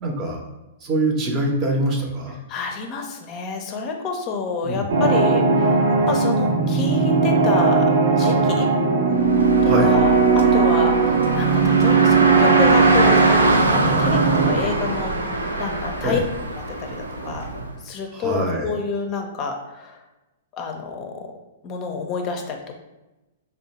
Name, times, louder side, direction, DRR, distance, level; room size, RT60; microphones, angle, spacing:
voice 1, 0.0-0.4 0.8-2.4 4.6-4.8 9.6-9.9 16.0-16.2 18.1-18.8, right 1 dB, 30° right, 1 dB, 0.7 m, -24 dB
voice 2, 2.5-5.8 6.1-7.8 8.2-8.7 9.6-16.2 16.8-17.5 17.8-20.0 20.5-21.1 21.6-22.8, left 5 dB, 35° left, 3 dB, 0.5 m, -29 dB
sound 1, 4.9-14.5, right 4 dB, 65° right, 0.8 m, -18 dB
Car, 9.1-17.7, right 2 dB, 90° right, 0.4 m, -24 dB
2.7 x 2.1 x 4.0 m, 1.0 s
hypercardioid pair, 115°, 0 cm